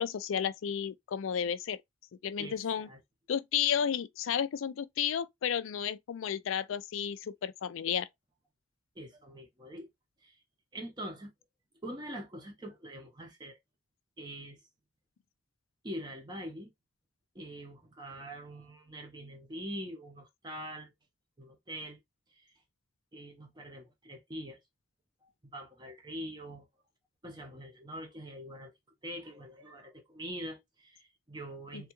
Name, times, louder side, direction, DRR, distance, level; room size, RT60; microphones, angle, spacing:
voice 1, 0.0-1.8 2.2-2.9 3.3-8.1 31.7-31.9, left 8 dB, 85° left, 0.4 m, -32 dB
voice 2, 2.4-3.0 9.0-9.9 10.2-10.4 10.7-11.3 11.8-13.6 14.2-14.6 15.8-16.7 17.3-20.9 21.4-22.0 22.3-22.6 23.1-24.6 25.4-26.7 27.2-28.7 29.0-31.9, equal, 20° right, 0.6 m, -44 dB
3.5 x 2.3 x 2.8 m
head